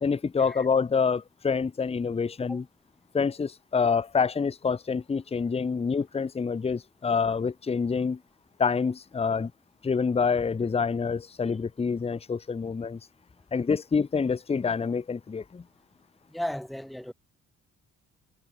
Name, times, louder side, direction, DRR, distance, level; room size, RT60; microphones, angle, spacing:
voice 1, 0.0-2.6 3.1-8.2 8.6-9.5 9.8-13.0 13.5-15.6, left 5 dB, 20° left, 0.7 m, -27 dB
voice 2, 16.3-17.1, left 1 dB, ahead, 1.4 m, -35 dB
cardioid pair, 90°, 30 cm